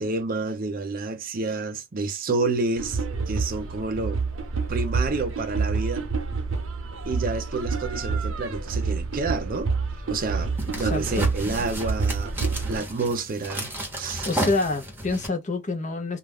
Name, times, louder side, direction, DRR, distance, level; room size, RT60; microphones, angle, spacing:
voice 1, 0.0-4.2 4.7-6.0 7.1-9.7 10.1-12.3 12.7-13.7 14.0-14.3, right 3 dB, 45° right, 0.5 m, -29 dB
sound 1, 2.8-12.8, right 4 dB, 70° right, 0.7 m, -28 dB
sound 2, 10.2-15.3, right 1 dB, 10° right, 0.8 m, -33 dB
voice 2, 10.8-11.3 14.3-16.2, left 3 dB, 35° left, 0.6 m, -27 dB
2.3 x 2.1 x 3.4 m
head